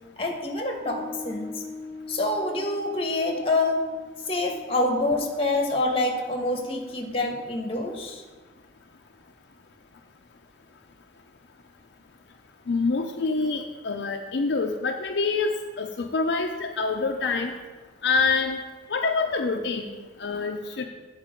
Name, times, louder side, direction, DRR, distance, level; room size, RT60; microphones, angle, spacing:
voice 1, 0.2-1.6 2.1-3.8 4.3-8.2, left 2 dB, 30° left, 2 dB, 1.1 m, -26 dB
Piano, 0.8-7.6, left 3 dB, 10° left, 2.1 m, -43 dB
voice 2, 12.7-17.5 18.0-18.6 18.9-20.8, left 4 dB, 70° left, 3 dB, 0.5 m, -26 dB
8.3 x 4.5 x 5.1 m, 1.3 s
head